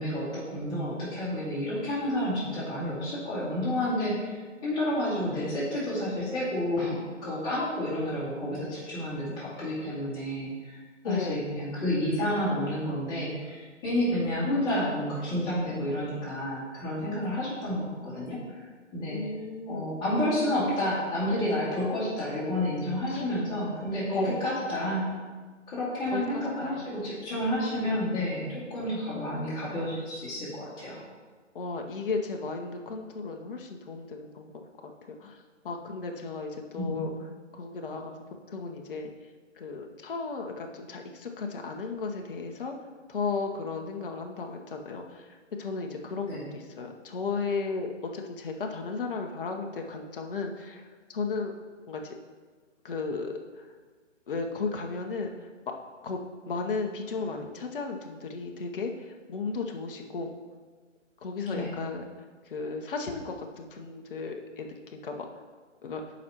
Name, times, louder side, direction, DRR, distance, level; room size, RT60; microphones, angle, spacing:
voice 1, 0.0-18.6 18.9-19.2 19.7-25.1 25.7-31.0 36.7-37.0 46.3-46.5 61.5-61.8, left 1 dB, 10° left, -10 dB, 2.2 m, -30 dB
voice 2, 11.0-11.4 19.1-20.0 23.1-23.3 23.9-24.5 26.1-26.9 31.5-34.9 35.2-35.4 35.6-37.1 37.5-38.2 38.5-39.1 39.6-42.7 43.1-50.8 51.1-51.5 51.9-52.1 52.8-53.7 54.3-55.3 56.0-60.3 61.2-62.0 62.5-65.3 65.8-66.0, left 4 dB, 45° left, 2 dB, 0.8 m, -35 dB
11.5 x 5.0 x 2.9 m, 1.5 s
figure-of-eight pair, 140°, 37 cm